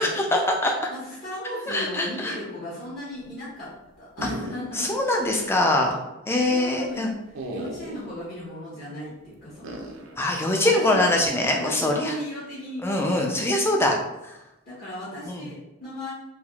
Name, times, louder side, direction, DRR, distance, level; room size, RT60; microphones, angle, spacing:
voice 1, 0.0-0.7 1.7-2.4 4.7-6.0 6.3-7.1 10.2-12.1 12.8-14.0 14.2-14.4 15.3-15.5, left 1 dB, 10° left, 1 dB, 0.3 m, -23 dB
voice 2, 0.9-3.7 4.0-4.9 6.3-7.0 7.5-10.1 10.6-11.0 11.5-12.9 14.7-16.1, equal, 45° left, -10 dB, 1.0 m, -36 dB
sound 1, 4.2-5.0 5.3-5.4 7.3-8.1 9.6-10.2, right 1 dB, 60° right, 0.4 m, -36 dB
3.3 x 2.3 x 2.3 m, 0.95 s
head